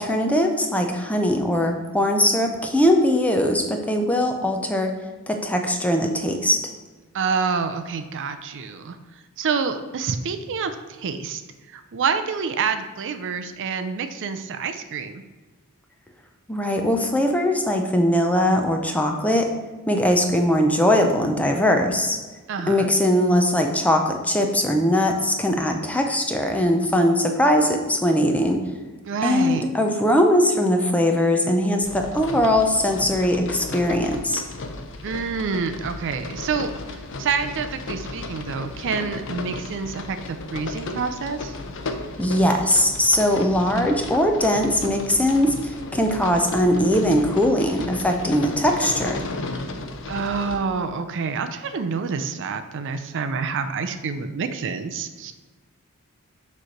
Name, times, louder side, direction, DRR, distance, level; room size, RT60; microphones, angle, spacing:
voice 1, 0.0-4.9 5.3-6.7 16.5-19.5 19.9-22.2 22.7-28.6 29.2-34.4 42.2-49.2, left 1 dB, 5° left, 3 dB, 0.5 m, -20 dB
voice 2, 7.1-9.0 9.4-11.4 11.7-15.2 22.5-22.9 29.0-29.7 35.0-36.7 37.2-41.5 50.1-55.3, right 5 dB, 55° right, 9 dB, 0.5 m, -27 dB
sound 1, 31.8-50.6, left 3 dB, 60° left, 0.7 m, -34 dB
6.3 x 3.2 x 5.7 m, 1.3 s
head